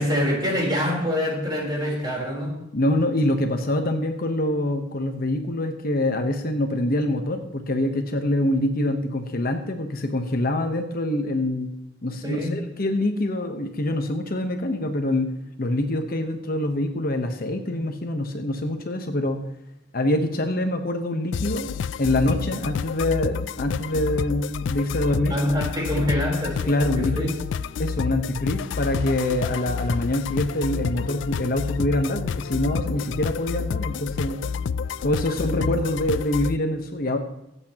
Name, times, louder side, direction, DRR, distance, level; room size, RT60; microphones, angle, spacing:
voice 1, 0.0-2.6 12.2-12.6 17.7-17.8 25.3-27.4 35.6-35.7, equal, 25° right, -2 dB, 3.8 m, -25 dB
voice 2, 2.7-11.7 12.0-15.3 15.6-19.4 19.9-21.7 22.0-25.4 26.7-27.3 27.8-34.4 35.0-37.2, left 1 dB, 50° left, 5 dB, 1.0 m, -25 dB
sound 1, 21.3-36.6, left 6 dB, 65° left, 0.3 m, -29 dB
24.0 x 8.2 x 2.9 m, 0.87 s
head